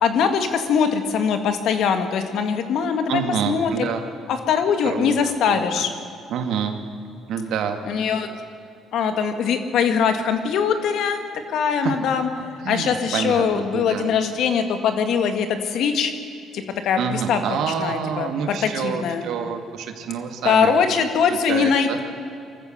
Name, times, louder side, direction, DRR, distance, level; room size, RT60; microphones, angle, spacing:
voice 1, 0.0-3.2 3.5-3.9 4.3-5.9 7.9-8.3 8.9-11.2 11.5-12.3 12.7-16.1 16.5-19.3 20.4-22.0, left 6 dB, 70° left, 7 dB, 2.0 m, -22 dB
voice 2, 3.1-4.0 4.8-5.2 5.5-5.8 6.3-6.8 7.3-7.8 11.8-12.0 12.6-14.1 17.0-20.7 21.3-22.0, right 7 dB, 75° right, 6 dB, 2.1 m, -27 dB
24.0 x 14.0 x 7.9 m, 2.5 s
cardioid pair, 115°, 0 cm